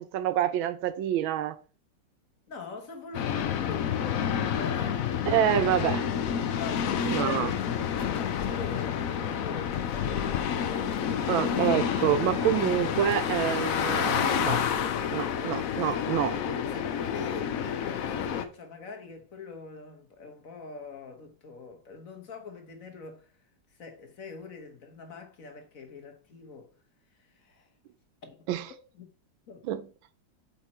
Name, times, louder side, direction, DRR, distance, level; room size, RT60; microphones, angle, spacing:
voice 1, 0.0-1.6 5.3-6.0 7.0-7.5 11.3-14.6 15.1-16.4 28.5-28.7 29.6-29.9, right 11 dB, 90° right, 1.5 m, -27 dB
voice 2, 2.5-5.1 6.6-10.1 16.6-23.2 23.8-26.7 27.4-27.7 28.2-28.5 29.0-29.1 29.5-29.6, left 4 dB, 45° left, 1.5 m, -43 dB
sound 1, 3.1-18.5, left 8 dB, 65° left, 0.9 m, -29 dB
8.1 x 4.3 x 4.4 m
omnidirectional pair, 2.1 m